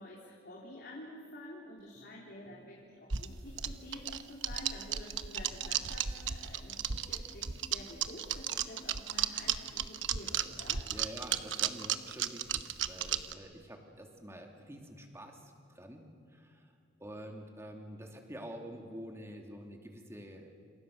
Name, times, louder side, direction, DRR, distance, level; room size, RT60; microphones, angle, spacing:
voice 1, 0.0-10.9, left 1 dB, 50° left, -3 dB, 3.7 m, -49 dB
sound 1, 1.8-14.2 14.5-15.5 15.8-16.2 16.5-17.1, equal, 20° left, 4.2 m, -60 dB
sound 2, 3.1-13.3, right 9 dB, 65° right, 1.0 m, -34 dB
voice 2, 10.9-16.7 17.0-20.5, equal, 15° right, 2 dB, 2.7 m, -47 dB
28.0 x 28.0 x 6.5 m, 2.4 s
head